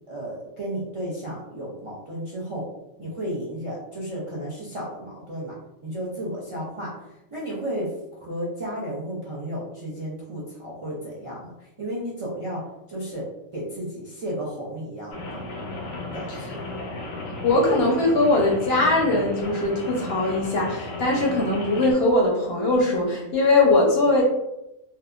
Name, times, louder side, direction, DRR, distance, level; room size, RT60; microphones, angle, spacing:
voice 1, 0.1-2.7 3.0-5.6 5.8-7.9 8.2-13.3 13.5-15.4 16.1-16.6, equal, 55° right, -7 dB, 0.3 m, -33 dB
Rain, 15.1-21.9, left 2 dB, 85° left, 1.1 m, -34 dB
voice 2, 17.4-24.2, left 2 dB, 60° left, -1 dB, 0.7 m, -21 dB
2.7 x 2.2 x 2.3 m, 0.90 s
omnidirectional pair, 1.4 m